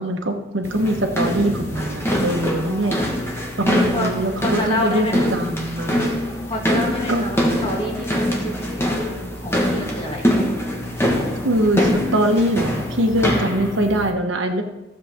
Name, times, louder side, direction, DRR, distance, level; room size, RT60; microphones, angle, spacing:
voice 1, 0.0-3.0 3.6-6.3 7.1-7.3 11.4-14.6, right 1 dB, 85° right, 4 dB, 1.3 m, -22 dB
sound 1, 0.6-14.1, equal, 15° left, 1.5 m, -24 dB
voice 2, 2.6-3.2 3.9-4.1 4.4-5.3 6.5-8.9 9.4-10.3 13.3-13.5, left 1 dB, 30° left, -3 dB, 2.5 m, -28 dB
15.0 x 7.5 x 3.7 m, 0.96 s
head